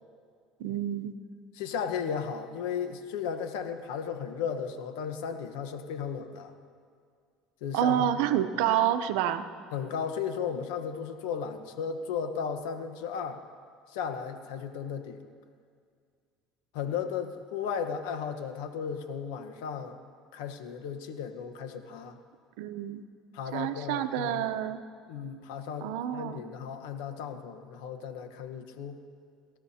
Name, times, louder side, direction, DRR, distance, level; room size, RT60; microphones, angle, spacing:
voice 1, 0.6-1.1 7.7-9.4 22.6-23.0 23.5-24.8 25.8-26.4, right 11 dB, 80° right, 10 dB, 0.7 m, -28 dB
voice 2, 1.6-6.5 7.6-8.2 9.7-13.4 13.9-15.3 16.7-20.0 20.3-22.2 23.3-24.5 25.1-29.0, left 7 dB, 85° left, 7 dB, 1.1 m, -35 dB
29.5 x 13.5 x 2.8 m, 2.2 s
supercardioid pair, 115°, 0 cm